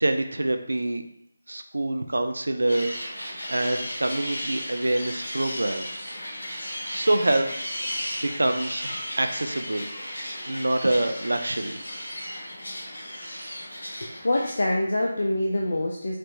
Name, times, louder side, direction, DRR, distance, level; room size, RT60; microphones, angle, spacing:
voice 1, 0.0-1.0 1.5-6.0 6.9-7.5 8.4-9.9 10.5-11.8, right 1 dB, 70° right, 7 dB, 0.3 m, -26 dB
sound 1, 2.7-14.5, equal, 75° left, 1.4 m, -35 dB
voice 2, 13.9-16.2, left 1 dB, 60° left, 0 dB, 0.4 m, -25 dB
4.2 x 3.0 x 2.5 m, 0.73 s
figure-of-eight pair, 155°, 0 cm